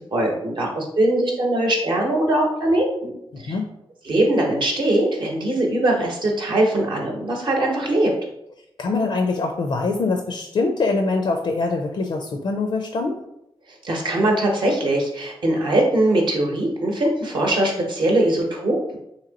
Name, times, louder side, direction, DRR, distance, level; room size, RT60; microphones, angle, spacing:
voice 1, 0.1-3.1 3.4-3.5 4.0-8.1 13.8-19.0, right 1 dB, 60° right, -1 dB, 0.9 m, -21 dB
voice 2, 8.8-13.2, left 3 dB, 65° left, 3 dB, 0.4 m, -23 dB
2.9 x 2.8 x 3.9 m, 0.79 s
wide cardioid pair, 120°, 9 cm